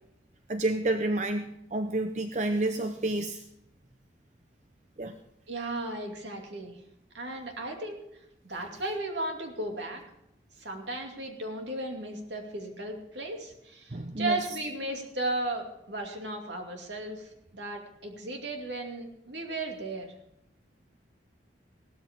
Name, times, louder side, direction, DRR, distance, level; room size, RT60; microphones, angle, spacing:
voice 1, 0.5-3.4 5.0-5.2 13.9-14.4, right 2 dB, 40° right, 7 dB, 0.6 m, -29 dB
voice 2, 5.5-6.8 7.1-8.0 8.4-10.0 10.6-17.3 17.5-20.1, right 2 dB, 75° right, 2 dB, 2.5 m, -35 dB
16.5 x 13.0 x 3.7 m, 0.80 s
head